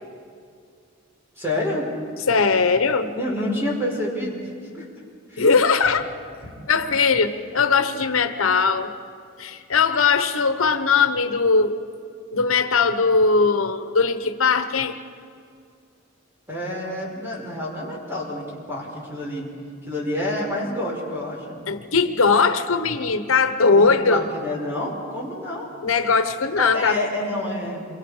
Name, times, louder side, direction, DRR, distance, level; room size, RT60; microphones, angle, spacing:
voice 1, 1.3-1.9 3.1-4.9 5.3-5.5 6.4-6.5 16.5-19.5 19.8-21.6 23.7-25.7 26.5-27.9, left 1 dB, 10° right, -3 dB, 5.2 m, -28 dB
voice 2, 2.3-3.1 5.4-6.1 6.7-8.9 9.4-11.8 12.3-15.0 21.7-24.3 25.8-27.0, left 4 dB, 80° left, 9 dB, 1.0 m, -20 dB
27.5 x 24.0 x 4.9 m, 2.3 s
head